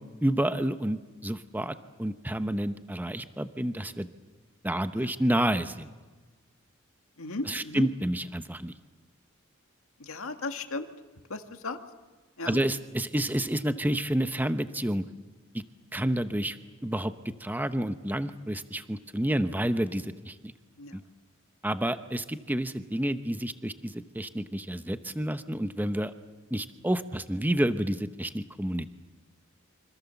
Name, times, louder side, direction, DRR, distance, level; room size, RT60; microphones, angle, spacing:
voice 1, 0.2-4.1 4.6-5.9 7.5-8.7 12.4-15.0 15.5-15.6 15.9-16.6 16.8-17.1 17.4-20.5 20.9-21.0 21.6-26.1 26.5-28.9, right 1 dB, 10° right, 10 dB, 0.8 m, -29 dB
voice 2, 7.2-7.9 10.0-10.9 11.3-11.8 12.4-12.6 20.8-21.0, left 2 dB, 90° left, 6 dB, 1.9 m, -35 dB
26.5 x 26.0 x 7.1 m, 1.3 s
head